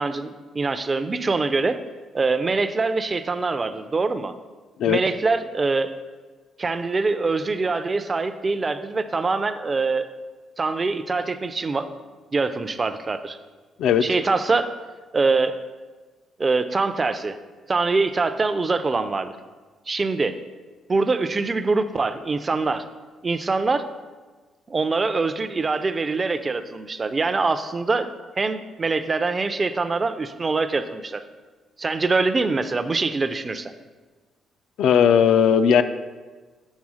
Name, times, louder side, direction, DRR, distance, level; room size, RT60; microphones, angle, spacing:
voice 1, 0.0-1.8 2.1-4.3 4.9-5.9 6.6-10.1 10.6-11.9 12.3-13.4 14.0-14.7 15.1-15.6 16.4-17.3 17.7-19.3 19.9-20.4 20.9-22.9 23.2-23.9 24.7-28.1 28.4-31.2 31.8-33.7, right 3 dB, 25° right, 11 dB, 0.4 m, -24 dB
voice 2, 34.8-35.8, left 8 dB, 75° left, 11 dB, 0.3 m, -17 dB
7.3 x 3.5 x 6.2 m, 1.4 s
cardioid pair, 120°, 0 cm